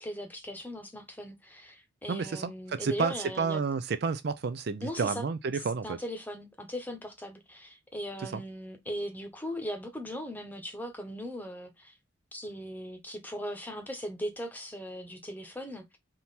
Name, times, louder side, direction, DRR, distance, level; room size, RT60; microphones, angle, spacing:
voice 1, 0.0-3.6 4.8-5.3 5.5-11.9 12.3-15.8, equal, 10° left, 0.9 m, -39 dB
voice 2, 2.1-6.0 8.3-8.4, right 5 dB, 55° right, 0.4 m, -30 dB
3.7 x 2.9 x 4.1 m
head